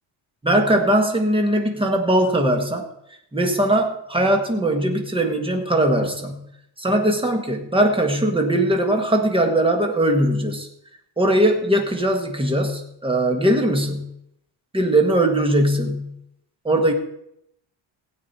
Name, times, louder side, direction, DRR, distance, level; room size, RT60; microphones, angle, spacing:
voice 1, 0.4-2.9 3.3-6.4 6.8-10.7 11.2-14.1 14.7-16.1 16.6-16.9, right 1 dB, 10° right, 4 dB, 1.5 m, -20 dB
16.5 x 8.8 x 4.2 m, 0.77 s
cardioid pair, 150°, 47 cm